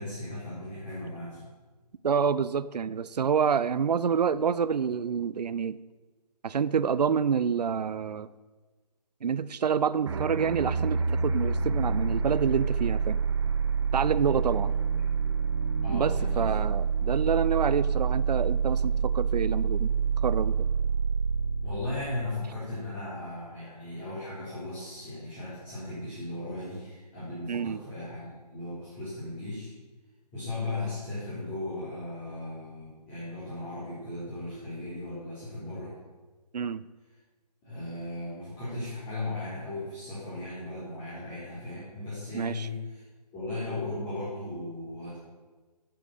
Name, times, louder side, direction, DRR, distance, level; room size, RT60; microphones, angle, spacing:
voice 1, 0.0-1.5 15.8-16.5 21.6-29.7 30.3-35.9 37.6-43.0 43.3-45.2, left 2 dB, 20° left, -10 dB, 4.1 m, -37 dB
voice 2, 2.0-5.8 6.4-8.3 9.2-13.2 13.9-14.7 15.9-19.9 20.2-20.7 27.5-27.8 36.5-36.8 42.3-42.7, right 7 dB, 75° right, 16 dB, 0.5 m, -27 dB
sound 1, 10.1-22.8, right 6 dB, 40° right, 0.9 m, -27 dB
10.0 x 7.8 x 6.5 m, 1.3 s
figure-of-eight pair, 155°, 21 cm